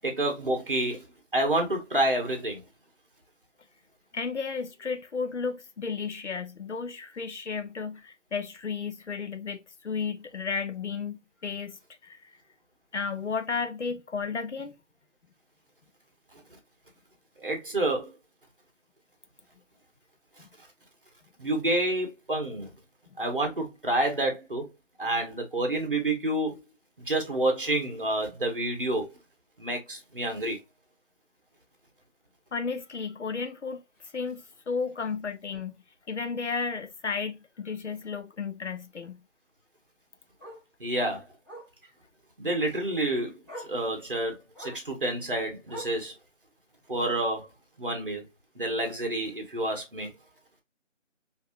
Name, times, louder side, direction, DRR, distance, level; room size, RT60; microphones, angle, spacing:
voice 1, 0.0-1.1 1.3-2.6 17.4-18.1 21.4-22.7 23.2-24.7 25.0-26.6 27.0-29.1 29.6-30.6 40.8-41.2 42.4-43.3 43.6-46.1 46.9-47.5 47.8-48.3 48.5-50.1, right 1 dB, 45° right, 1.2 m, -28 dB
voice 2, 4.1-12.2 12.9-14.7 20.4-20.5 32.5-33.8 34.1-35.7 36.1-39.2, left 5 dB, 65° left, 0.7 m, -33 dB
Bark, 33.9-34.1 34.5-34.6 35.0-35.1 35.4-35.5 36.9-37.0 39.5-39.6 40.4-40.7 41.4-41.8 42.9-43.0 43.5-43.8 44.5-44.9 45.7-46.0 46.9-47.4 48.4-48.5, right 1 dB, 10° left, 2.0 m, -43 dB
4.1 x 2.7 x 2.2 m
figure-of-eight pair, 170°, 38 cm